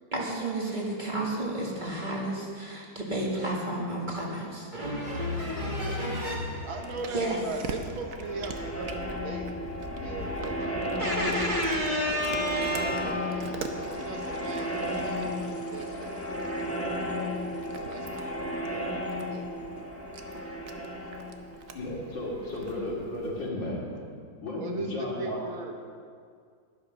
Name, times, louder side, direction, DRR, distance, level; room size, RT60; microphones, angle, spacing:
voice 1, 0.1-6.7 7.1-7.4 11.0-13.1, equal, 25° right, -3 dB, 1.8 m, -31 dB
sound 1, 6.3-22.9, left 1 dB, 10° left, 1.1 m, -34 dB
Cat, 6.4-23.5, right 5 dB, 55° right, 1.0 m, -45 dB
voice 2, 6.6-9.5 10.0-11.8 12.1-12.3 13.0-13.2 13.8-16.2 17.8-18.3 18.6-19.7 24.6-25.7, right 3 dB, 90° right, 3 dB, 2.1 m, -39 dB
voice 3, 21.7-23.8 24.4-25.4, left 1 dB, 65° left, -5 dB, 3.5 m, -34 dB
11.0 x 10.5 x 6.4 m, 2.1 s
omnidirectional pair, 2.1 m